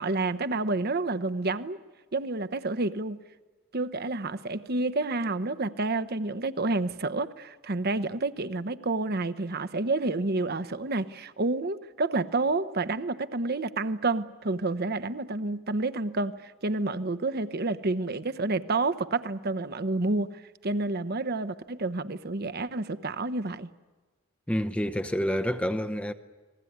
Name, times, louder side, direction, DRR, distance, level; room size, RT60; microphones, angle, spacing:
voice 1, 0.0-1.8 2.1-3.2 3.7-23.7, right 2 dB, 50° right, 1.0 m, -29 dB
voice 2, 24.5-26.1, equal, 5° left, 0.8 m, -28 dB
30.0 x 20.5 x 9.4 m
head